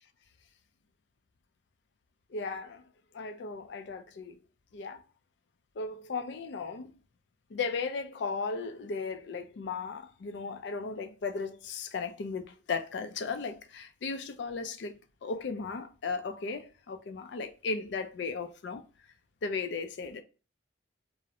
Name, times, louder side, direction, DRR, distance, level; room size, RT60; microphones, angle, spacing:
voice 1, 2.3-2.8 3.1-4.4 4.7-5.0 5.8-6.9 7.5-18.8 19.4-20.2, left 4 dB, 60° left, 0.4 m, -36 dB
2.5 x 2.0 x 2.7 m
head